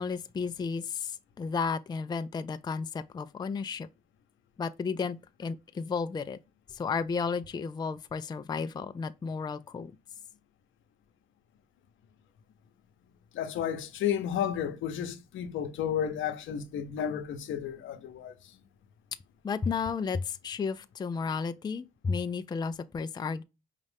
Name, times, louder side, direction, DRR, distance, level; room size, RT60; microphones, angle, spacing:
voice 1, 0.0-3.9 4.6-6.4 6.7-9.9 19.4-23.4, left 5 dB, 20° left, 0.4 m, -33 dB
voice 2, 13.3-18.3, left 9 dB, 75° left, 0.8 m, -32 dB
5.3 x 2.5 x 3.4 m
cardioid pair, 90°, 20 cm